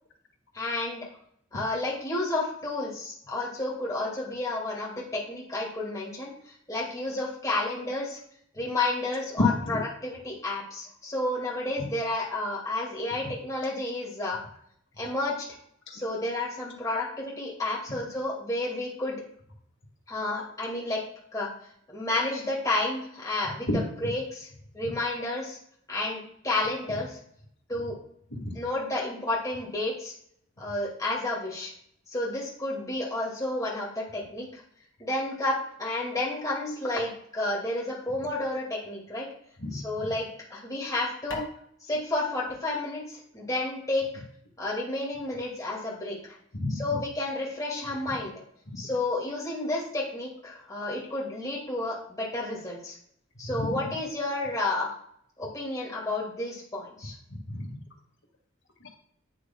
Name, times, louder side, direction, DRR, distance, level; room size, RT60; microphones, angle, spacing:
voice 1, 0.5-1.1 1.5-6.3 6.7-8.2 8.6-14.4 15.0-15.4 15.9-19.2 20.1-21.0 21.3-21.5 21.9-23.7 24.0-24.5 24.7-25.6 25.9-27.2 27.7-28.0 28.5-30.1 30.6-31.7 32.1-34.6 35.0-39.3 39.7-41.4 41.9-44.1 44.6-46.2 46.8-48.4 48.8-52.9 53.4-55.0 55.4-57.1, left 2 dB, 15° left, -4 dB, 2.1 m, -31 dB
voice 2, 39.6-40.1 46.6-46.8 48.8-48.9 53.4-53.9 57.3-57.8 58.8-58.9, left 2 dB, 60° left, -1 dB, 2.0 m, -30 dB
9.7 x 6.5 x 2.3 m, 0.66 s
head